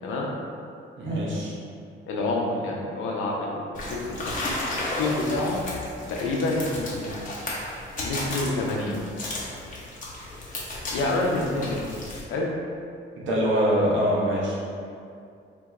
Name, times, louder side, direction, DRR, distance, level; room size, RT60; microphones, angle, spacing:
voice 1, 1.0-1.5 13.2-14.6, equal, 70° right, -6 dB, 0.9 m, -23 dB
voice 2, 2.1-4.4 5.0-5.6 6.1-7.3 8.0-9.0 10.9-11.8 12.3-12.5, left 2 dB, 90° left, -2 dB, 0.6 m, -27 dB
sound 1, 3.7-12.2, left 1 dB, 40° left, 0.9 m, -34 dB
2.7 x 2.3 x 4.1 m, 2.4 s
cardioid pair, 90°, 20 cm